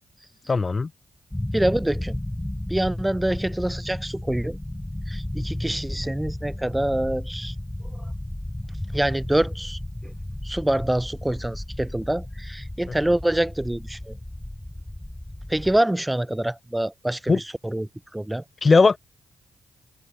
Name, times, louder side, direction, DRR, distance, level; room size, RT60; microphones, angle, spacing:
voice 1, 0.5-0.9 17.3-17.4 18.6-19.0, left 4 dB, 40° left, 0.4 m, -17 dB
sound 1, 1.3-15.8, left 1 dB, 10° left, 2.2 m, -33 dB
voice 2, 1.5-2.2 2.7-4.6 5.1-7.5 8.9-10.1 10.4-14.1 15.5-18.4, right 1 dB, 10° right, 0.9 m, -26 dB
open air
supercardioid pair, 45°, 0 cm